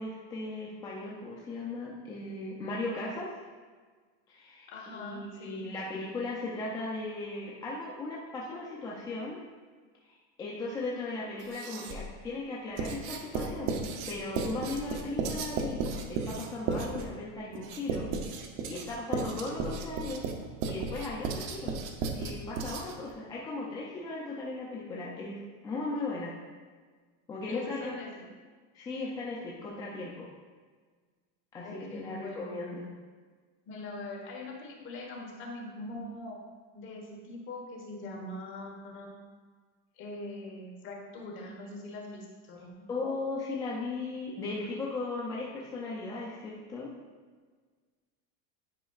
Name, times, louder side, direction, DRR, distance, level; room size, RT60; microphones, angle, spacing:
voice 1, 0.0-3.3 4.3-4.7 4.9-9.4 10.0-13.7 14.1-15.8 16.1-18.1 18.7-20.2 20.7-21.7 22.1-26.4 27.3-27.9 28.7-30.3 31.5-32.8 42.9-46.9, left 2 dB, 10° left, -4 dB, 0.3 m, -37 dB
voice 2, 4.7-5.7 24.9-25.4 27.5-28.3 31.6-32.6 33.7-36.4 36.7-39.2 40.0-42.9, left 2 dB, 30° left, -1 dB, 1.3 m, -42 dB
Writing, 11.4-12.1 12.8-23.1, right 4 dB, 45° right, 0.7 m, -34 dB
10.0 x 5.1 x 2.4 m, 1.5 s
supercardioid pair, 160°, 37 cm